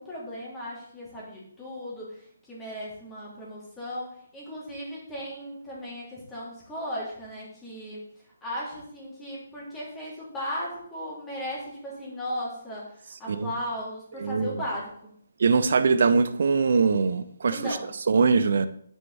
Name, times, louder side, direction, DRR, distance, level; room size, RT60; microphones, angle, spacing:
voice 1, 0.0-8.0 8.4-15.1 17.5-17.9, equal, 10° left, 3.0 m, -36 dB
voice 2, 14.2-14.6 15.4-17.6 18.1-18.7, right 4 dB, 60° right, 0.7 m, -22 dB
9.0 x 5.7 x 4.2 m
hypercardioid pair, 155°, 0 cm